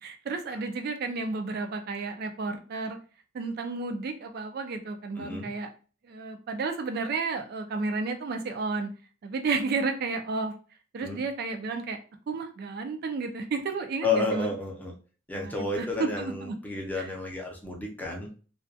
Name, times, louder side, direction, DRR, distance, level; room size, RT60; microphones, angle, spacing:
voice 1, 0.0-3.0 3.3-5.7 6.0-8.9 9.2-10.5 10.9-12.0 12.3-14.5 15.3-16.6 17.0-17.1, right 4 dB, 55° right, 6 dB, 0.4 m, -32 dB
voice 2, 5.2-5.5 11.0-11.2 14.0-14.9 15.3-18.3, left 3 dB, 10° left, 0 dB, 0.5 m, -31 dB
2.3 x 2.2 x 2.6 m, 0.37 s
head